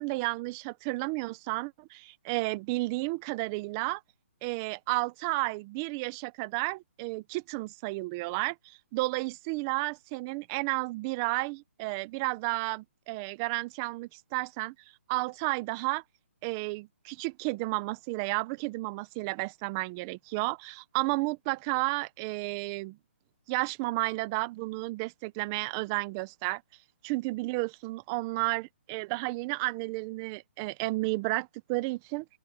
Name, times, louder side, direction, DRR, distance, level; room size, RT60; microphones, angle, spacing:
voice 1, 0.0-4.0 4.4-14.7 15.1-16.0 16.4-23.0 23.5-26.6 27.0-32.3, right 23 dB, 10° right, 0.4 m, -32 dB
open air
hypercardioid pair, 175°, 7 cm